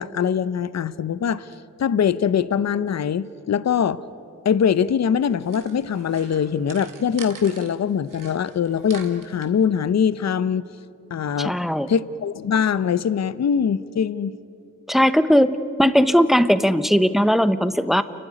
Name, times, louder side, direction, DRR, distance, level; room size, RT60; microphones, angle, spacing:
voice 1, 0.0-1.5 1.8-4.0 4.4-10.6 11.1-11.6 11.9-14.3, left 7 dB, 55° left, 17 dB, 0.7 m, -22 dB
sound 1, 5.1-7.7 8.1-9.5, right 6 dB, 85° right, 2.0 m, -44 dB
voice 2, 11.4-11.9 14.9-18.0, equal, ahead, 13 dB, 0.9 m, -18 dB
29.0 x 12.0 x 9.9 m, 2.6 s
cardioid pair, 65°, 31 cm